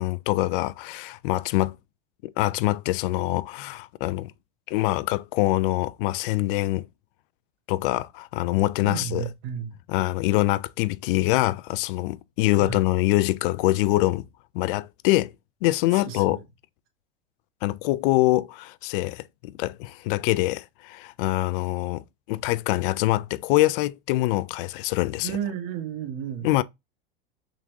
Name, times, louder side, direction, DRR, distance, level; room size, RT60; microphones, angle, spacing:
voice 1, 0.0-1.8 2.4-4.3 4.7-6.9 7.7-9.2 9.9-14.3 14.5-15.3 15.6-16.4 17.6-25.3 26.4-26.6, left 18 dB, 60° left, 0.4 m, -24 dB
voice 2, 8.8-9.8 12.6-12.8 15.9-16.4 25.2-26.5, right 9 dB, 55° right, 1.6 m, -32 dB
3.7 x 3.1 x 3.4 m
supercardioid pair, 120°, 30 cm